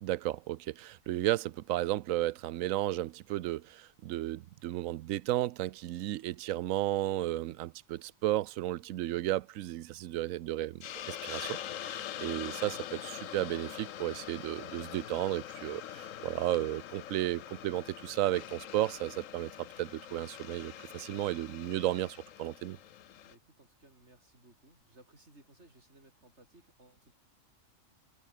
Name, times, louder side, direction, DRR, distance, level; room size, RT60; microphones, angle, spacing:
voice 1, 0.0-22.8, right 14 dB, 85° right, 1.0 m, -34 dB
Hiss, 10.8-23.3, left 11 dB, 75° left, 1.2 m, -44 dB
voice 2, 11.9-12.3 23.2-27.1, right 2 dB, 60° right, 5.9 m, -61 dB
omnidirectional pair, 1.3 m